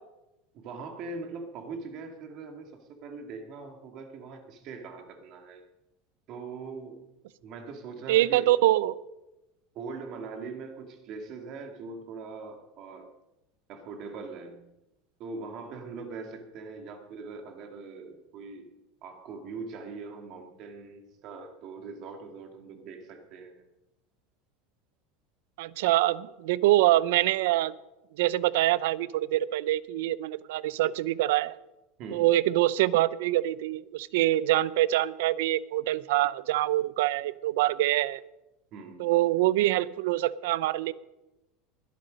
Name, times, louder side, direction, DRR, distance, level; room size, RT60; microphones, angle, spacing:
voice 1, 0.5-5.7 6.3-7.1 7.4-8.5 9.7-13.1 13.7-14.6 15.2-23.7 32.0-32.3 38.7-39.2, right 4 dB, 40° right, 5 dB, 2.2 m, -41 dB
voice 2, 8.1-9.0 25.6-27.7 28.2-31.5 32.1-38.2 39.0-40.9, right 15 dB, 75° right, 19 dB, 0.6 m, -25 dB
21.0 x 11.5 x 5.2 m, 0.97 s
supercardioid pair, 170°, 0 cm